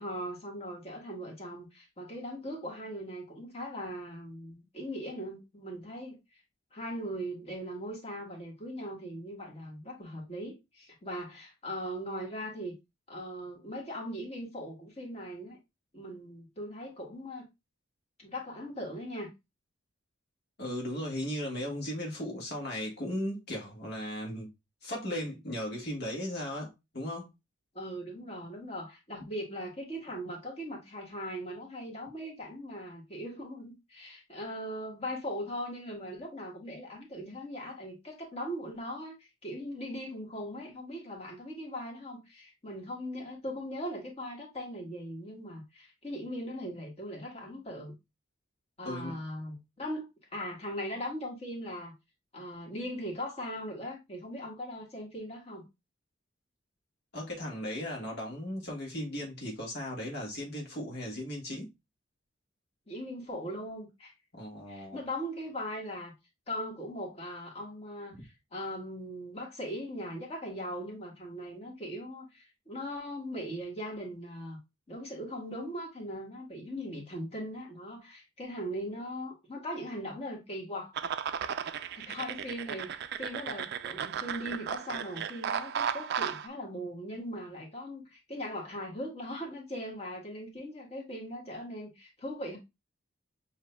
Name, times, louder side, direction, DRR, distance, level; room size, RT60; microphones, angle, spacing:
voice 1, 0.0-6.2 6.7-12.7 13.1-15.6 15.9-17.4 18.2-19.3 27.7-47.9 48.8-51.9 52.3-55.7 62.9-64.1 64.7-66.1 66.5-74.6 74.9-80.9 81.9-92.6, equal, 30° left, 1.6 m, -39 dB
voice 2, 20.6-24.5 24.8-27.3 48.8-49.2 57.1-61.7 64.3-65.0, left 1 dB, 55° left, 1.4 m, -36 dB
sound 1, 80.9-86.5, right 8 dB, 55° right, 0.3 m, -35 dB
7.2 x 2.7 x 2.2 m
head